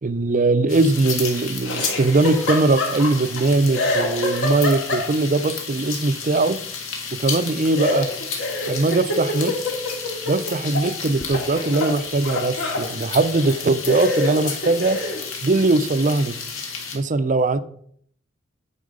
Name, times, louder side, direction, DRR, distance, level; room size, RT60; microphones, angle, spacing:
voice 1, 0.0-6.6 7.2-8.1 8.7-9.5 10.3-15.0 15.4-16.3 16.9-17.6, right 3 dB, 40° right, 0.5 m, -20 dB
sound 1, 0.7-17.0, left 5 dB, 80° left, 1.9 m, -32 dB
Laughter, 1.6-3.4 3.7-5.4 7.8-10.9 11.2-12.9 13.5-13.6 13.9-15.2, left 2 dB, 60° left, 2.2 m, -26 dB
9.4 x 5.6 x 5.0 m
head